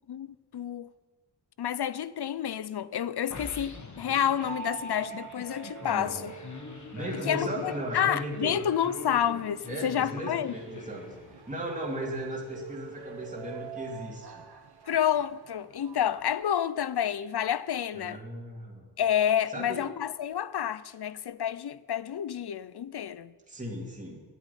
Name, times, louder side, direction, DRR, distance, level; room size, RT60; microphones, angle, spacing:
voice 1, 0.5-0.9 1.6-6.3 7.3-10.5 14.9-18.2 19.0-23.3, left 9 dB, 70° left, 0.6 m, -29 dB
sound 1, 3.3-11.6, left 3 dB, 45° left, 1.5 m, -43 dB
sound 2, 4.4-16.3, right 7 dB, 70° right, 1.3 m, -46 dB
voice 2, 5.8-6.3 6.9-8.6 9.7-14.4 17.9-18.9 19.5-19.8 23.5-24.2, right 1 dB, 20° right, 2.5 m, -36 dB
10.5 x 9.3 x 9.9 m
wide cardioid pair, 115°, 41 cm